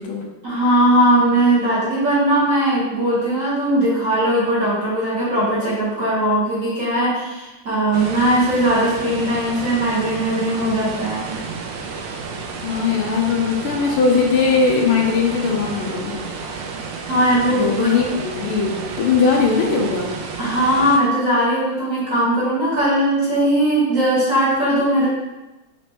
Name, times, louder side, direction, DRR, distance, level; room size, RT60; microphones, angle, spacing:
voice 1, 0.4-11.3 17.1-17.9 20.4-25.1, right 1 dB, 45° right, -9 dB, 1.3 m, -19 dB
sound 1, 7.9-21.0, right 4 dB, 90° right, 1.5 m, -31 dB
voice 2, 12.6-16.2 17.5-20.2, left 5 dB, 80° left, 0 dB, 1.5 m, -19 dB
4.3 x 3.0 x 2.8 m, 1.0 s
omnidirectional pair, 2.3 m